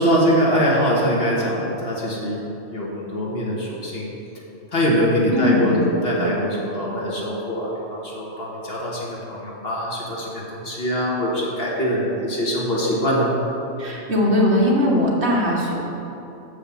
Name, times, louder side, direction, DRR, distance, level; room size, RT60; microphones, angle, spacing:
voice 1, 0.0-2.4 2.7-4.1 4.7-13.3, equal, 50° left, -4 dB, 1.7 m, -23 dB
voice 2, 5.3-5.8 13.8-15.8, left 1 dB, 60° right, -3 dB, 1.6 m, -19 dB
7.6 x 5.0 x 7.0 m, 3.0 s
omnidirectional pair, 1.3 m